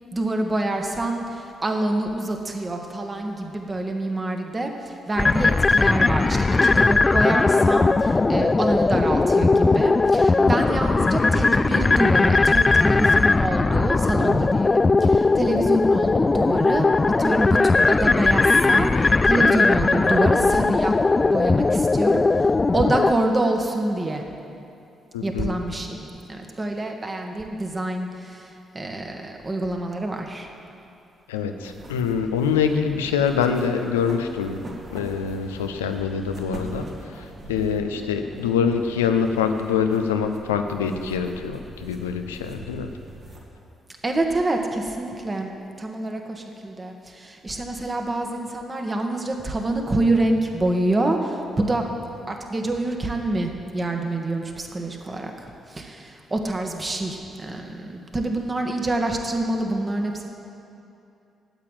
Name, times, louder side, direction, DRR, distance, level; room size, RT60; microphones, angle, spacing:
voice 1, 0.1-16.8 17.2-21.0 21.2-24.2 25.2-30.5 44.0-45.5 45.8-51.9 52.3-60.3, right 2 dB, 30° right, 3 dB, 1.6 m, -26 dB
sound 1, 5.2-23.1, left 3 dB, 30° left, 0.3 m, -19 dB
voice 2, 25.1-25.5 31.3-34.6 34.9-42.9, left 6 dB, 80° left, 7 dB, 0.6 m, -25 dB
sound 2, 31.6-43.4, right 1 dB, 50° right, 2.4 m, -42 dB
9.0 x 8.5 x 9.1 m, 2.7 s
figure-of-eight pair, 40°, 0 cm